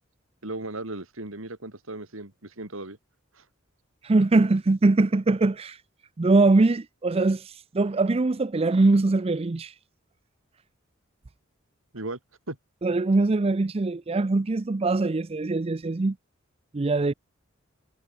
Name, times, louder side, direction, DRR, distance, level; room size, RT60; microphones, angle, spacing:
voice 1, 0.4-3.0 11.9-12.2 12.5-12.6, right 2 dB, 85° right, 3.3 m, -36 dB
voice 2, 4.0-5.8 6.2-9.7 12.8-16.2 16.7-17.1, right 3 dB, 30° right, 0.5 m, -22 dB
head